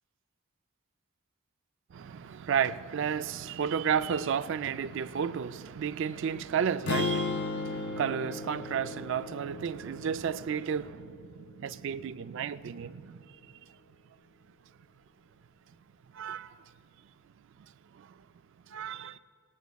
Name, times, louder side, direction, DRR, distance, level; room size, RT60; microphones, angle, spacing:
voice 1, 1.9-13.3 16.1-16.5 18.0-18.1 18.7-19.2, right 7 dB, 60° right, 0.3 m, -32 dB
sound 1, 6.9-11.0, left 3 dB, 50° left, 0.5 m, -35 dB
18.5 x 18.5 x 2.3 m
head